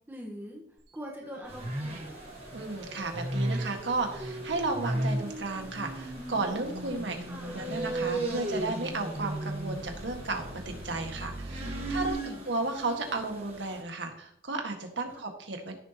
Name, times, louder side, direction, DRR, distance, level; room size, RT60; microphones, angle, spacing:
voice 1, 0.1-0.6 0.9-2.1 7.3-7.8 11.6-12.4, equal, 10° right, -2 dB, 1.3 m, -43 dB
sound 1, 0.8-12.1, right 1 dB, 60° right, 1.6 m, -42 dB
sound 2, 1.4-10.9, left 1 dB, 55° left, 2.3 m, -52 dB
sound 3, 1.5-13.8, right 1 dB, 35° right, 1.8 m, -36 dB
voice 2, 2.5-7.2 7.4-12.2 12.5-15.7, right 3 dB, 80° right, 3 dB, 1.8 m, -33 dB
14.5 x 6.9 x 3.0 m, 0.71 s
head